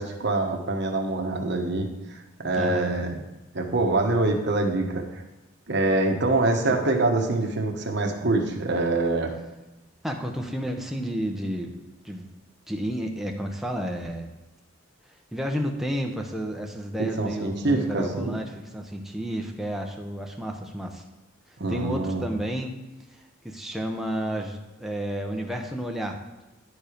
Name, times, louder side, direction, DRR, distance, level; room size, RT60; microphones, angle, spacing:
voice 1, 0.0-3.2 3.5-5.0 5.7-9.3 17.2-18.4 21.6-22.3, right 2 dB, 55° right, 2 dB, 1.1 m, -25 dB
voice 2, 2.6-2.9 6.7-6.8 10.0-11.8 12.0-12.3 12.7-14.3 15.3-21.0 21.5-22.8 23.1-26.4, equal, ahead, 2 dB, 0.7 m, -31 dB
10.5 x 4.7 x 5.1 m, 1.1 s
head